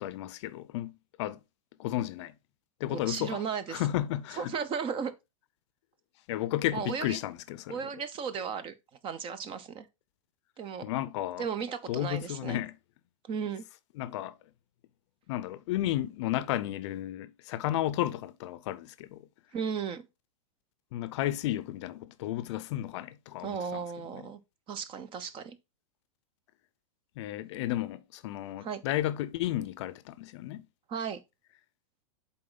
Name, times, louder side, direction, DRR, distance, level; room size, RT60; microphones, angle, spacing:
voice 1, 0.0-1.4 1.8-2.3 2.8-3.4 3.7-4.5 6.3-7.8 10.8-11.5 11.9-12.8 14.0-14.3 15.3-19.2 20.9-23.8 27.2-30.7, left 14 dB, 55° left, 0.6 m, -33 dB
voice 2, 2.9-3.9 4.4-5.1 6.7-7.2 7.7-8.7 9.0-9.9 10.6-10.8 11.4-12.6 13.3-13.6 19.5-20.1 23.4-24.4 24.7-25.6 28.6-28.8 30.9-31.2, right 6 dB, 30° right, 0.9 m, -35 dB
7.6 x 4.1 x 3.9 m
hypercardioid pair, 125°, 18 cm